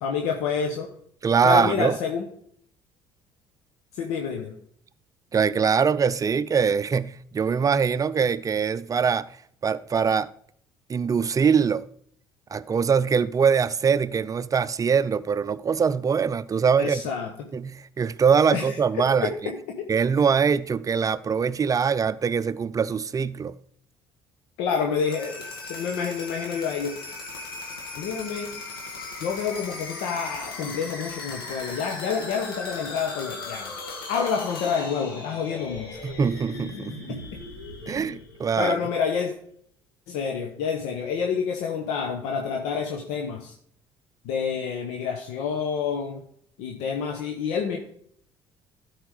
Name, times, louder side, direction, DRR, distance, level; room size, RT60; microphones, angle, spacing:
voice 1, 0.0-0.9 1.4-2.3 3.9-4.6 16.8-17.3 18.5-19.9 24.6-26.9 28.0-28.5 29.2-33.7 34.1-36.0 37.1-37.4 38.6-39.3 40.1-43.5 44.2-46.2 46.6-47.8, left 6 dB, 70° left, 1.0 m, -28 dB
voice 2, 1.2-2.0 5.3-9.3 9.6-10.3 10.9-11.9 12.5-17.1 17.5-19.3 19.9-23.6 36.0-37.2 37.9-38.8, right 6 dB, 30° right, 0.5 m, -23 dB
sound 1, 25.0-38.8, left 3 dB, 90° left, 1.8 m, -38 dB
12.5 x 4.9 x 4.8 m
hypercardioid pair, 60°, 11 cm